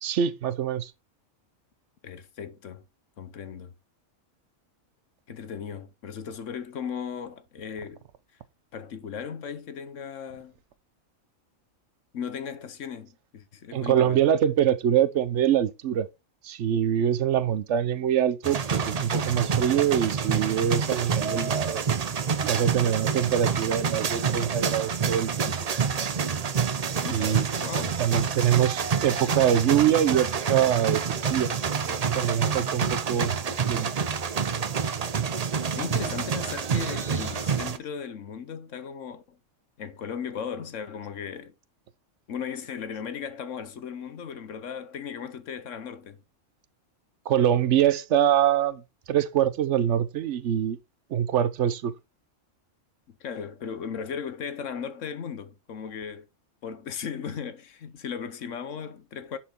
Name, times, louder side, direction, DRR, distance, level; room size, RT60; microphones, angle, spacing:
voice 1, 0.0-0.9 13.7-16.1 16.4-21.9 22.4-25.5 27.1-27.5 28.0-31.0 31.3-31.5 31.8-33.9 47.3-48.8 49.1-50.8 51.1-51.9, right 10 dB, 65° right, 1.0 m, -24 dB
voice 2, 2.0-2.8 3.2-3.7 5.3-8.0 8.7-10.5 12.1-14.2 27.0-28.0 35.7-39.4 39.8-41.5 42.3-46.2 53.1-56.3 56.6-59.4, left 7 dB, 70° left, 1.3 m, -36 dB
sound 1, 18.4-37.8, right 6 dB, 40° right, 0.6 m, -27 dB
10.5 x 4.5 x 4.4 m
omnidirectional pair, 1.3 m